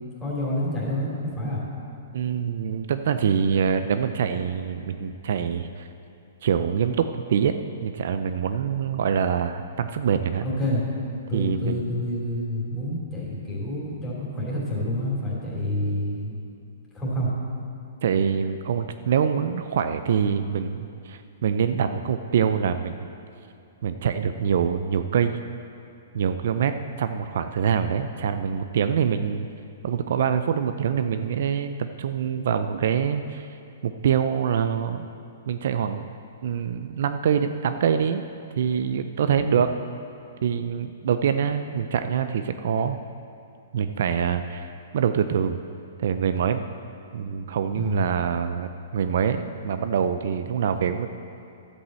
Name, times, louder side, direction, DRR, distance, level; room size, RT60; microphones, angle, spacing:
voice 1, 0.2-1.6 10.4-10.8 11.3-16.3 16.9-17.3 39.3-39.5 47.7-48.0, left 1 dB, 10° left, -6 dB, 2.9 m, -28 dB
voice 2, 2.1-5.9 6.4-10.5 11.3-11.8 18.0-23.1 23.8-25.4 26.1-29.5 29.8-33.5 33.8-35.1 35.5-36.1 36.4-38.2 38.6-39.7 40.4-43.0 43.7-44.6 44.9-45.6 46.0-46.6 47.1-51.1, right 7 dB, 60° right, 9 dB, 0.4 m, -25 dB
11.5 x 5.4 x 7.5 m, 2.5 s
hypercardioid pair, 155°, 0 cm